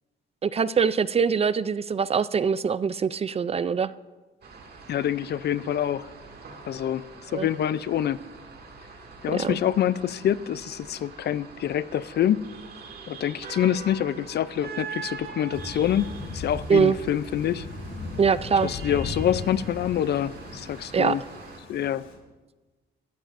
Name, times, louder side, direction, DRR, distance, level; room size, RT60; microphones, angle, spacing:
voice 1, 0.4-3.9 7.3-7.5 9.3-9.6 16.7-17.0 18.2-18.7 20.9-21.2, right 6 dB, 30° right, 17 dB, 0.4 m, -23 dB
sound 1, 4.4-21.6, right 5 dB, 55° right, 2.2 m, -43 dB
voice 2, 4.9-6.1 6.7-7.0 7.3-8.2 9.2-12.4 13.1-17.7 18.6-21.2 21.7-22.0, left 10 dB, 55° left, 17 dB, 0.5 m, -26 dB
Thunder / Rain, 15.5-22.1, left 3 dB, 80° left, 3.4 m, -38 dB
17.5 x 13.0 x 2.6 m, 1.2 s
cardioid pair, 90°, 20 cm